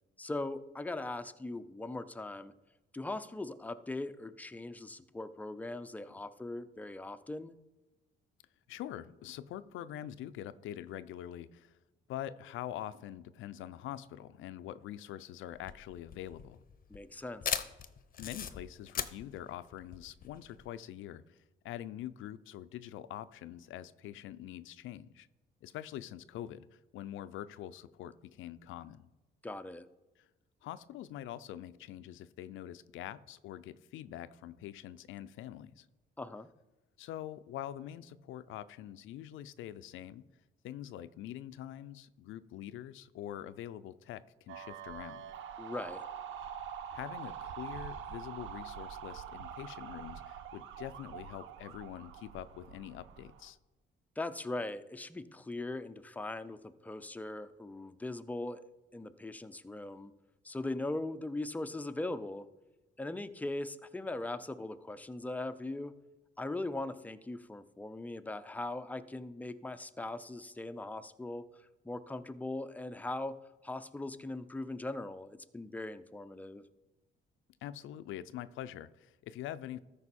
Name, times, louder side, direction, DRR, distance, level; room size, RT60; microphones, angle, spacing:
voice 1, 0.2-2.5 2.9-7.6 16.9-17.6 29.4-29.9 36.2-36.5 45.6-46.0 54.2-58.6 58.9-60.1 60.4-62.5 63.0-65.9 66.4-73.3 73.6-76.6, left 2 dB, 10° left, 11 dB, 0.5 m, -40 dB
voice 2, 8.7-11.7 12.1-16.6 18.2-21.4 21.6-25.3 25.6-29.1 30.6-35.9 37.0-40.2 40.6-45.3 46.9-53.6 77.6-79.8, left 12 dB, 80° left, 14 dB, 0.4 m, -44 dB
sound 1, 15.5-20.7, left 8 dB, 45° left, 0.7 m, -39 dB
sound 2, 44.5-53.5, right 8 dB, 75° right, 0.7 m, -45 dB
13.5 x 5.3 x 4.2 m, 1.1 s
cardioid pair, 90°, 20 cm